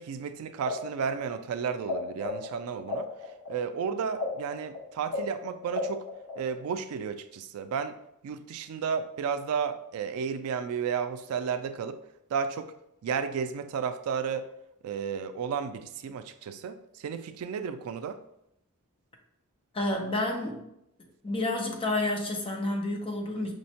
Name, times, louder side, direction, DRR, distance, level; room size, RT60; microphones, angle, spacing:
voice 1, 0.0-6.0 6.4-8.0 8.2-12.0 12.3-12.7 13.0-14.5 14.8-18.2, right 6 dB, 75° right, 10 dB, 0.3 m, -33 dB
sound 1, 0.6-1.9 2.2-6.7, left 3 dB, 55° left, 0.8 m, -34 dB
voice 2, 19.7-20.6 21.2-23.5, left 2 dB, 25° left, 2 dB, 0.5 m, -30 dB
5.1 x 2.1 x 2.7 m, 0.78 s
head